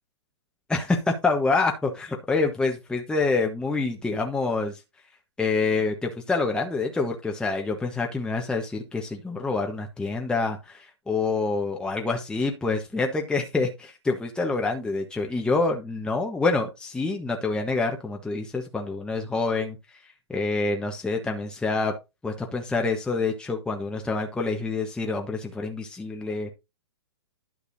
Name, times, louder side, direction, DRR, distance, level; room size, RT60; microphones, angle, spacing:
voice 1, 0.7-4.8 5.4-19.8 20.3-21.9 22.2-26.5, left 3 dB, 5° left, 2 dB, 1.3 m, -27 dB
11.5 x 6.7 x 2.7 m, 0.24 s
hypercardioid pair, 125°, 14 cm